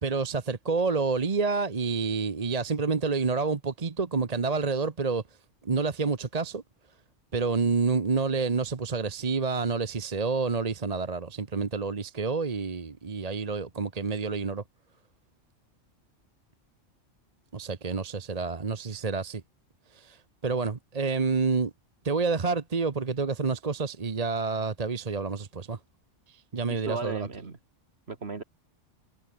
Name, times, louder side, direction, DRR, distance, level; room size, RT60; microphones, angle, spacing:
voice 1, 0.0-5.2 5.6-6.6 7.3-14.6 17.5-19.4 19.9-21.7 22.0-25.8 26.3-27.3, right 4 dB, 35° right, 1.0 m, -28 dB
voice 2, 26.7-27.6 28.1-28.4, right 4 dB, 55° right, 2.2 m, -35 dB
omnidirectional pair, 1.3 m